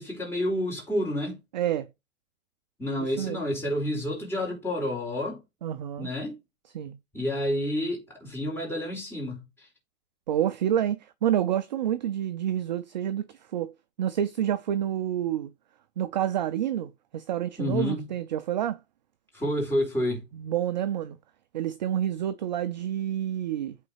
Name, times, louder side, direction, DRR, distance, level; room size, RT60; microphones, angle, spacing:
voice 1, 0.0-1.4 2.8-5.4 6.0-6.4 7.1-9.4 17.6-18.1 19.3-20.2, left 1 dB, 5° left, 4.3 m, -29 dB
voice 2, 1.5-1.9 3.0-3.4 5.6-6.1 6.7-7.0 10.3-13.2 13.5-13.7 14.0-15.5 16.0-18.8 20.3-21.2 21.5-23.8, right 10 dB, 35° right, 0.5 m, -28 dB
8.5 x 4.1 x 4.7 m
hypercardioid pair, 145°, 42 cm